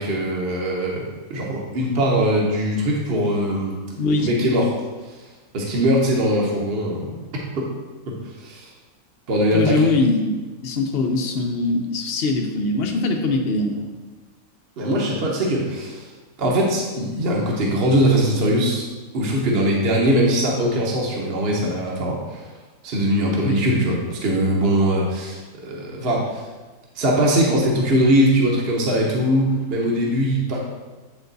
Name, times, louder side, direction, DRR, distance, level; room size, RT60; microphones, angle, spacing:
voice 1, 0.0-3.8 4.2-4.7 5.5-7.2 7.6-7.7 8.1-8.7 9.3-9.9 14.8-16.1 16.4-18.9 19.1-22.5 22.8-26.4 26.9-30.6, equal, 45° right, -2 dB, 1.1 m, -21 dB
voice 2, 3.9-4.3 9.5-13.9 23.4-23.6, left 3 dB, 55° left, 2 dB, 0.8 m, -22 dB
8.2 x 3.4 x 3.9 m, 1.2 s
omnidirectional pair, 1.5 m